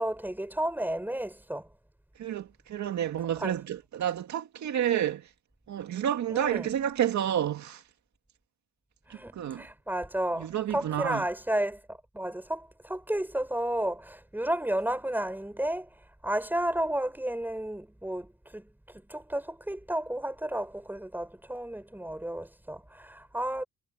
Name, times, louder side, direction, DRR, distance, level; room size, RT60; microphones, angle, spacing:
voice 1, 0.0-1.7 3.4-3.6 6.3-6.7 9.1-15.9 16.2-18.7 19.1-23.6, right 1 dB, 5° right, 7.0 m, -32 dB
voice 2, 2.2-5.3 5.7-7.8 9.1-9.6 10.4-11.3, right 10 dB, 70° right, 2.2 m, -30 dB
cardioid pair, 90°, 30 cm